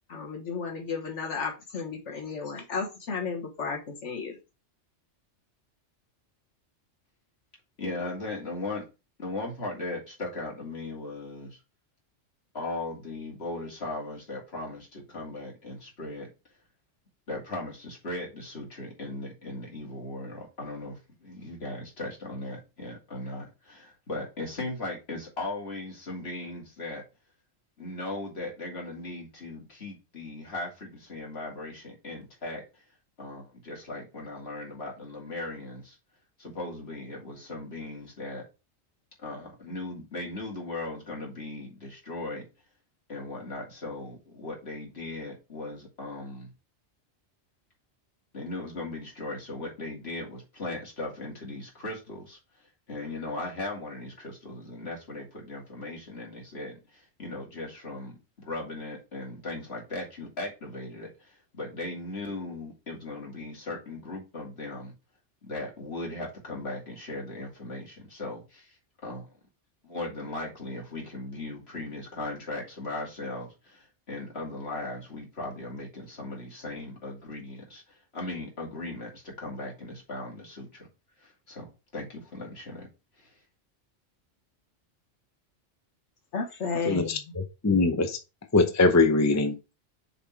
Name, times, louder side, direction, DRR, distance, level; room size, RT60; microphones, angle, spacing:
voice 1, 0.1-4.4 86.3-87.3, left 5 dB, 85° left, 1.6 m, -33 dB
voice 2, 7.8-8.9 9.2-11.6 12.5-16.3 17.3-27.0 27.8-32.8 33.2-36.0 36.4-38.4 39.2-42.4 43.1-46.5 48.3-52.4 52.9-64.9 65.4-68.8 69.0-69.3 69.8-80.9 81.2-82.9 83.2-83.4, left 2 dB, 60° left, 2.9 m, -38 dB
voice 3, 86.9-87.2 87.6-88.2 88.5-89.7, left 3 dB, 15° left, 0.6 m, -22 dB
6.6 x 4.2 x 4.6 m
omnidirectional pair, 1.2 m